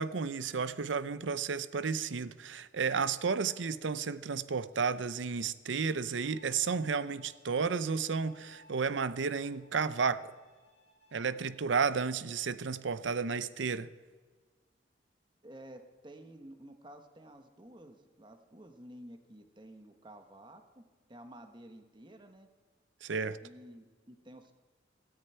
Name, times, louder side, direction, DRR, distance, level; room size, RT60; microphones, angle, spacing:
voice 1, 0.0-10.3 11.1-13.9 23.0-23.4, right 5 dB, 90° right, 0.6 m, -32 dB
Bowed string instrument, 6.2-11.2, left 2 dB, 35° left, 3.3 m, -61 dB
voice 2, 15.4-20.8 21.1-22.5 23.4-24.6, right 1 dB, 25° right, 1.1 m, -52 dB
17.5 x 13.5 x 4.4 m
head